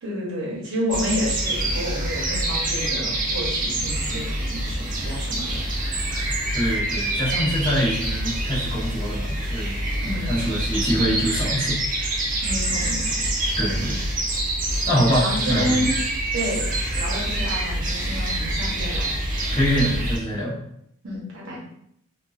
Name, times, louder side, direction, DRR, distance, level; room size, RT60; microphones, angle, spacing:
voice 1, 0.0-5.8 6.1-6.2 10.0-10.3 12.4-13.2 13.7-13.9 15.2-15.9 16.3-19.1 21.0-21.6, equal, 60° right, -4 dB, 0.8 m, -30 dB
sound 1, 0.9-20.2, right 1 dB, 40° right, 0.5 m, -26 dB
voice 2, 6.5-9.8 10.0-11.8 13.6-13.9 14.8-15.8 19.5-20.5, equal, 20° left, -10 dB, 0.9 m, -24 dB
2.3 x 2.3 x 2.4 m, 0.72 s
head